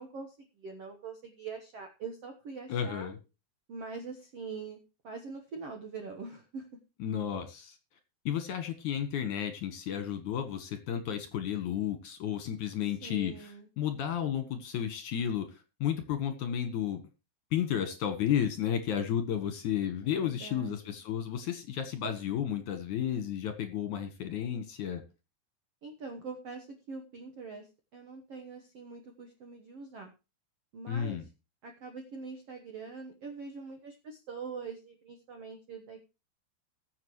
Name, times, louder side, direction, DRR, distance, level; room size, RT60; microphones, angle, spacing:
voice 1, 0.0-3.1 3.7-4.8 5.0-6.7 13.0-13.7 20.2-20.8 25.8-30.1 30.7-31.2 31.6-36.0, right 4 dB, 65° right, 4 dB, 1.5 m, -43 dB
voice 2, 2.7-3.2 7.0-7.8 8.2-17.0 17.5-25.0 30.9-31.2, left 9 dB, 60° left, 8 dB, 2.4 m, -32 dB
20.5 x 7.5 x 3.1 m, 0.29 s
omnidirectional pair, 4.7 m